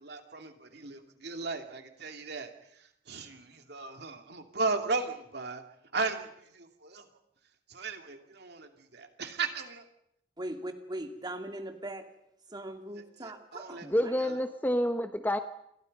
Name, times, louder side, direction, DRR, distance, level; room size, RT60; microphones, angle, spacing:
voice 1, 0.0-5.6 5.9-7.1 7.7-9.8 13.2-13.9 14.2-14.4, right 3 dB, 60° right, 5 dB, 2.6 m, -36 dB
voice 2, 10.4-12.0 12.5-14.2, right 1 dB, 25° right, 5 dB, 2.6 m, -40 dB
voice 3, 13.8-15.4, equal, 10° left, 8 dB, 1.2 m, -28 dB
29.0 x 23.0 x 5.4 m, 0.77 s
head